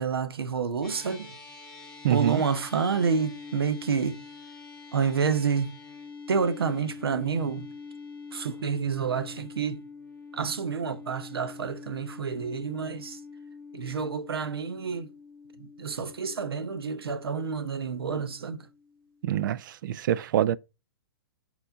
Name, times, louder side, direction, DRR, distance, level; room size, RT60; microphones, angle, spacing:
voice 1, 0.0-1.3 2.1-4.2 4.9-5.7 6.3-7.7 8.3-9.8 10.3-13.2 13.7-15.1 15.6-18.6, right 6 dB, 85° right, 0.7 m, -29 dB
sound 1, 0.8-19.4, left 4 dB, 5° left, 1.6 m, -46 dB
voice 2, 2.0-2.4 19.2-20.6, right 11 dB, 60° right, 0.4 m, -25 dB
4.4 x 4.2 x 2.5 m
hypercardioid pair, 130°, 12 cm